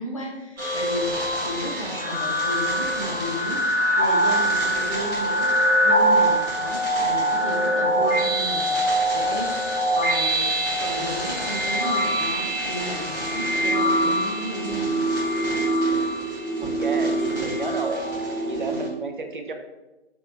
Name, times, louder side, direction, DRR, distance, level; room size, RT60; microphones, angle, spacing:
voice 1, 0.0-10.5 10.8-15.0, equal, 30° left, -1 dB, 0.4 m, -34 dB
sound 1, 0.6-18.9, right 1 dB, 10° right, 1.0 m, -23 dB
voice 2, 16.6-17.9 18.4-19.5, right 4 dB, 50° right, 4 dB, 0.4 m, -32 dB
3.7 x 2.9 x 2.5 m, 1.1 s
figure-of-eight pair, 140°, 32 cm